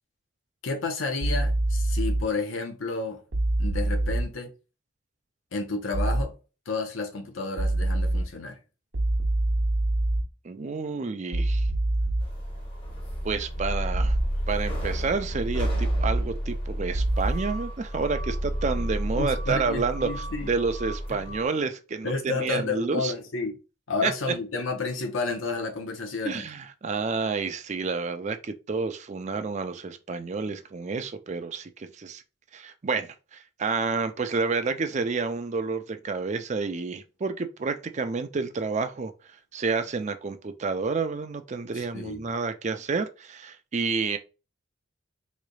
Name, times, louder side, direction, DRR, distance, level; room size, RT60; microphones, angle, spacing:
voice 1, 0.6-3.2 3.6-4.5 5.5-6.4 6.7-8.6 19.2-20.5 22.0-23.6 23.9-26.4 41.7-42.3, left 3 dB, 85° left, 0.8 m, -31 dB
sound 1, 1.2-2.2 3.3-4.2 5.9-6.2 7.6-8.2 8.9-10.2 11.3-12.2 13.9-14.2 15.6-16.2 16.9-17.3, right 1 dB, 65° right, 0.9 m, -25 dB
voice 2, 10.4-11.7 13.2-14.2 14.5-23.1 24.0-24.3 26.2-32.2 32.5-44.2, right 4 dB, 35° right, 0.4 m, -29 dB
sound 2, 12.2-21.5, equal, 30° left, 1.2 m, -32 dB
3.9 x 3.2 x 2.3 m
head